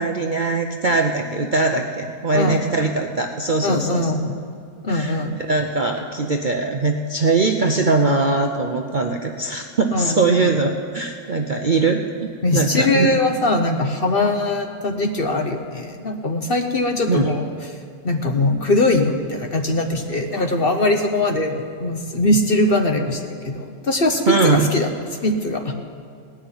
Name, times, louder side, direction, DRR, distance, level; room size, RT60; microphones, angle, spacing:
voice 1, 0.0-4.1 4.9-13.1 17.1-17.3 24.3-24.7, right 3 dB, 45° right, 3 dB, 0.7 m, -21 dB
voice 2, 3.6-4.5 4.8-5.4 9.9-10.5 12.4-17.5 18.0-24.9 25.2-25.7, left 2 dB, 45° left, 5 dB, 1.0 m, -21 dB
17.5 x 6.5 x 9.5 m, 2.3 s
omnidirectional pair, 1.6 m